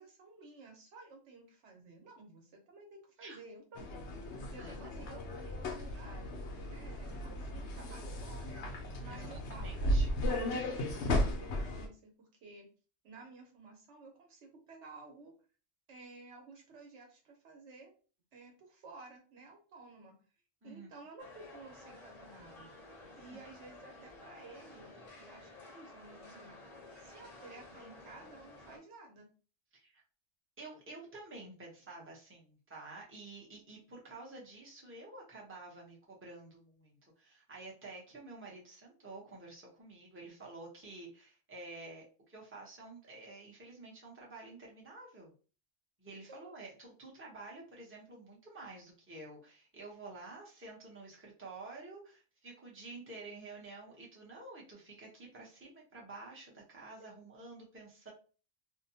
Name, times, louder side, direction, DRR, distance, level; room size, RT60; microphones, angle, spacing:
voice 1, 0.0-4.2 4.5-8.6 9.0-9.9 10.3-12.7 13.0-15.3 15.9-17.9 18.3-20.2 20.6-22.7 23.2-26.6 27.0-29.3 46.3-46.5, right 3 dB, 85° right, 1 dB, 1.1 m, -54 dB
sound 1, 3.8-11.9, left 1 dB, 80° left, 0.9 m, -35 dB
voice 2, 4.6-5.1 9.1-10.1 20.6-20.9 23.3-23.4 29.7-30.0 30.6-45.3 46.0-58.1, right 3 dB, 15° right, -3 dB, 0.7 m, -50 dB
sound 2, 21.2-28.8, left 2 dB, 40° left, 0.8 m, -53 dB
2.6 x 2.1 x 2.7 m, 0.37 s
omnidirectional pair, 1.1 m